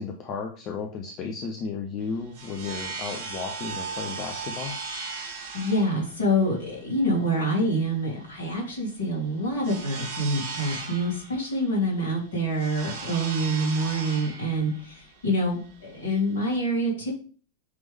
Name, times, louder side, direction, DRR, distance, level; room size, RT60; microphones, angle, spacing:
voice 1, 0.0-4.7, left 5 dB, 35° left, 3 dB, 0.8 m, -34 dB
sound 1, 2.0-16.6, right 4 dB, 55° right, 1.8 m, -38 dB
voice 2, 5.5-17.1, equal, 60° left, -3 dB, 3.3 m, -26 dB
8.0 x 3.6 x 3.5 m, 0.41 s
figure-of-eight pair, 90°, 0 cm